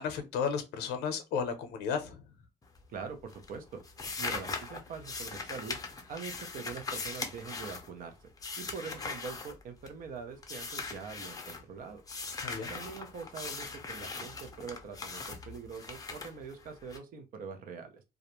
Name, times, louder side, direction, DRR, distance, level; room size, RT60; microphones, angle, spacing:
voice 1, 0.0-2.2 12.4-12.7, left 6 dB, 85° left, 0.6 m, -33 dB
sound 1, 2.6-3.1 3.3-10.1 10.4-11.6 12.1-17.0, left 4 dB, 20° left, 0.5 m, -40 dB
voice 2, 2.9-3.8 4.2-5.8 6.1-8.2 8.6-12.0 12.7-18.0, right 5 dB, 55° right, 0.6 m, -43 dB
2.4 x 2.1 x 2.9 m
cardioid pair, 110°, 17 cm